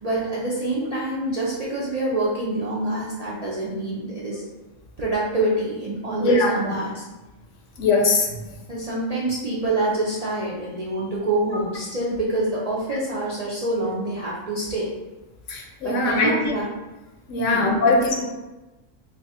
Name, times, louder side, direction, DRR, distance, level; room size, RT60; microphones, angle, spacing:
voice 1, 0.0-4.4 5.0-7.0 8.7-14.9 15.8-16.7 17.5-18.2, right 2 dB, 50° right, -7 dB, 0.5 m, -26 dB
voice 2, 6.2-6.7 7.8-8.3 15.5-16.3 17.3-18.2, left 3 dB, 70° left, 0 dB, 1.0 m, -20 dB
3.1 x 2.4 x 4.1 m, 1.1 s
omnidirectional pair, 1.4 m